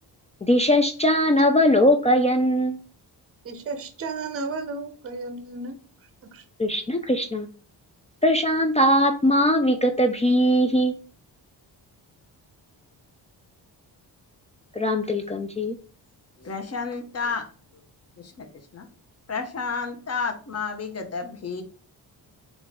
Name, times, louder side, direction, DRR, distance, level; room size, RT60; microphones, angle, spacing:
voice 1, 0.4-2.8 6.6-7.5 8.2-10.9 14.8-15.8, equal, 15° left, 0.4 m, -20 dB
voice 2, 3.4-5.7 6.2-6.4, right 3 dB, 30° right, 0.6 m, -33 dB
voice 3, 16.4-17.5 17.7-17.8 18.2-18.5 18.7-18.9 19.3-21.6, left 5 dB, 35° left, 0.9 m, -31 dB
3.8 x 2.4 x 3.5 m
cardioid pair, 75°, 43 cm